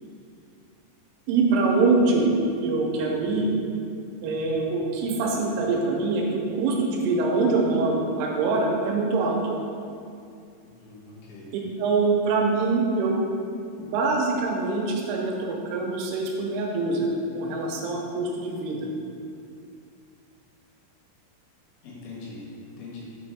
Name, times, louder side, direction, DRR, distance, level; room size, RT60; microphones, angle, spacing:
voice 1, 1.3-2.3 2.6-3.5 4.2-9.4 11.8-13.2 13.8-17.1 17.3-18.9, right 3 dB, 90° right, -1 dB, 3.3 m, -24 dB
voice 2, 10.6-11.5 21.8-23.0, left 3 dB, 80° left, -5 dB, 3.9 m, -42 dB
7.1 x 5.2 x 3.4 m, 2.4 s
omnidirectional pair, 5.6 m